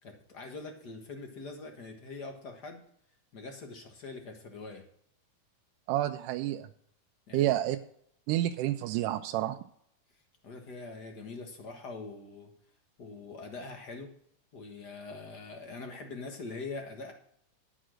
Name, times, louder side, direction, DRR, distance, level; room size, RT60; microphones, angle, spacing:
voice 1, 0.0-2.8 3.3-4.8 7.3-7.5 10.4-12.5 13.0-14.1 14.5-17.1, left 3 dB, 55° left, 4 dB, 1.2 m, -43 dB
voice 2, 5.9-6.7 7.3-7.8 8.3-9.6, right 14 dB, 85° right, 6 dB, 2.1 m, -29 dB
11.0 x 6.3 x 6.3 m, 0.67 s
omnidirectional pair, 3.7 m